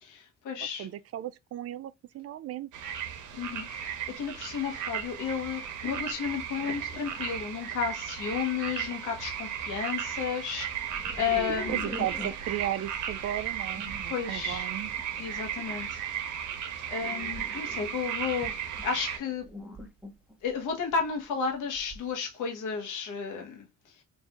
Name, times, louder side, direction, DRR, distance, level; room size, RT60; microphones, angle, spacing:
voice 1, 0.0-0.9 3.3-11.9 14.1-14.7 15.2-16.0 16.9-19.5 20.4-23.9, left 6 dB, 85° left, 1.2 m, -33 dB
voice 2, 0.8-2.7 11.7-14.9, right 12 dB, 55° right, 0.4 m, -35 dB
sound 1, 2.7-19.2, right 9 dB, 75° right, 0.8 m, -35 dB
sound 2, 4.1-4.2 4.7-4.9 5.6-5.7 6.6-7.2 8.6-8.7 9.0-9.4 10.9-22.1, left 1 dB, 5° right, 1.0 m, -45 dB
3.2 x 2.6 x 3.5 m
cardioid pair, 90°, 30 cm